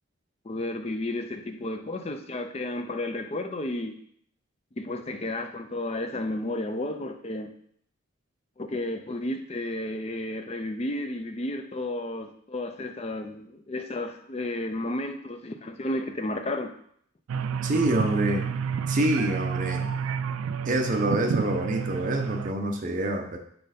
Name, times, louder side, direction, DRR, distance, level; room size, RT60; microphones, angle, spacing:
voice 1, 0.4-4.0 4.8-7.5 8.6-16.7, left 1 dB, 30° left, 7 dB, 0.5 m, -32 dB
sound 1, 17.3-22.5, right 6 dB, 85° right, 0.3 m, -30 dB
voice 2, 17.6-18.4 18.9-19.9 20.6-23.4, right 1 dB, 40° right, 3 dB, 0.7 m, -26 dB
4.4 x 4.3 x 5.0 m, 0.66 s
head